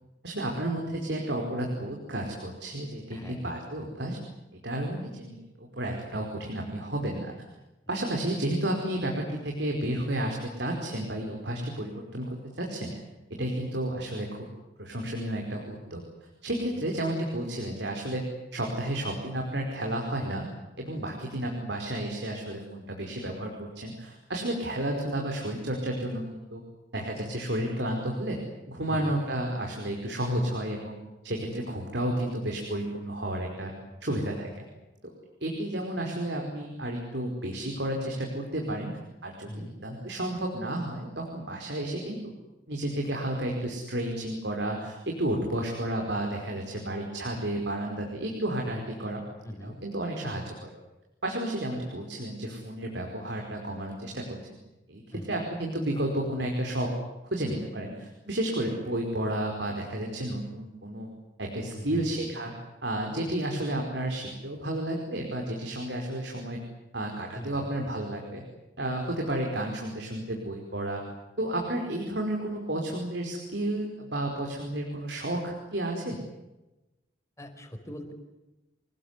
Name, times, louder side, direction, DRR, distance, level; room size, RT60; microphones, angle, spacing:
voice 1, 0.2-4.2 4.6-7.3 7.9-12.9 13.3-14.5 14.8-16.0 16.4-18.2 18.5-20.5 20.8-26.6 26.9-28.4 28.7-31.0 31.2-33.7 34.0-34.5 35.0-35.1 35.4-38.9 39.2-42.3 42.7-49.2 49.6-50.7 51.2-54.6 54.9-55.0 55.3-56.9 57.3-61.1 61.4-62.5 62.8-66.6 66.9-68.4 68.8-71.0 71.4-76.2, right 1 dB, 65° right, 1 dB, 5.1 m, -32 dB
voice 2, 3.1-3.4 7.9-8.0 13.4-13.5 16.7-16.8 21.0-21.3 28.9-29.1 33.9-34.2 39.4-39.8 45.5-45.6 49.4-49.8 55.1-55.4 58.8-59.0 61.7-62.1 63.3-63.4 67.3-67.7 77.4-78.1, equal, 15° left, 5 dB, 4.8 m, -42 dB
28.0 x 20.5 x 9.7 m, 1.0 s
head